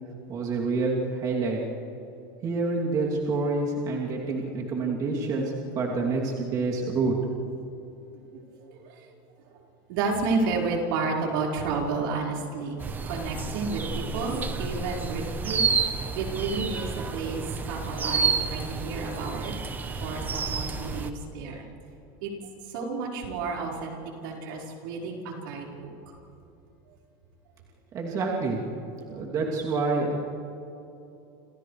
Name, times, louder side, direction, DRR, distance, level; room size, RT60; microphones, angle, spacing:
voice 1, 0.3-1.6 2.4-7.2 27.9-28.6 29.1-30.2, right 3 dB, 35° right, -3 dB, 3.0 m, -27 dB
voice 2, 8.5-9.1 9.5-9.6 9.9-12.8 13.0-15.6 15.9-19.5 20.0-21.6 22.2-25.9, right 4 dB, 80° right, -3 dB, 4.9 m, -31 dB
sound 1, 12.8-21.1, right 5 dB, 15° right, 1.0 m, -30 dB
29.5 x 28.5 x 3.4 m, 2.9 s
supercardioid pair, 165°, 11 cm